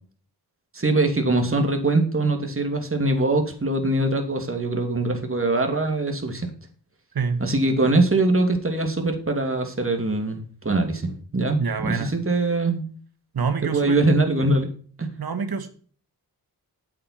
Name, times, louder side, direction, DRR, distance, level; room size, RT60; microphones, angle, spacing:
voice 1, 0.7-6.5 7.4-12.8 13.6-14.7 15.0-15.1, right 2 dB, 35° right, 4 dB, 2.9 m, -22 dB
voice 2, 7.1-7.4 11.6-12.1 13.3-14.0 15.2-15.7, right 5 dB, 65° right, 9 dB, 1.6 m, -26 dB
8.5 x 8.4 x 4.5 m, 0.43 s
cardioid pair, 55°, 39 cm